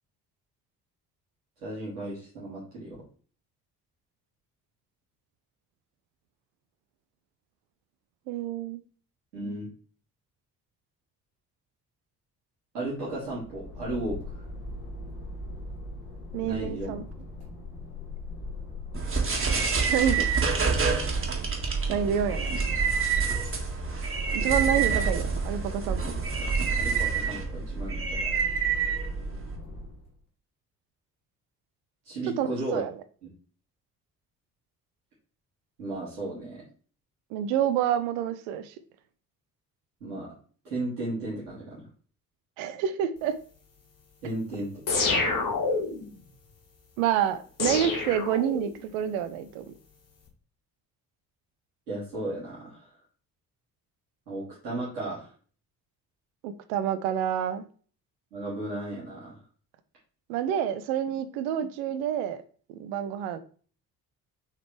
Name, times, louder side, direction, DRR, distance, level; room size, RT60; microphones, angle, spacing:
voice 1, 1.6-3.0 9.3-9.7 12.7-14.4 16.4-16.9 24.5-24.7 26.8-28.3 32.0-32.8 35.8-36.7 40.0-40.3 40.6-41.9 44.2-44.7 51.9-52.9 54.3-55.3 58.3-59.4, right 2 dB, 80° right, -8 dB, 2.4 m, -35 dB
voice 2, 8.3-8.8 16.3-17.0 19.9-20.3 21.2-21.3 21.9-22.5 24.3-26.1 32.4-32.9 37.3-38.7 42.6-43.4 47.0-49.6 56.4-57.6 60.3-62.4 62.7-63.4, right 9 dB, 65° right, 10 dB, 0.7 m, -28 dB
sound 1, 13.0-30.1, left 2 dB, 60° left, 2.0 m, -40 dB
sound 2, 18.9-29.6, right 5 dB, 25° right, 1.9 m, -27 dB
sound 3, 44.9-46.1 47.6-48.9, left 3 dB, 45° left, 1.5 m, -27 dB
7.2 x 4.1 x 3.3 m, 0.42 s
figure-of-eight pair, 45°, 45 cm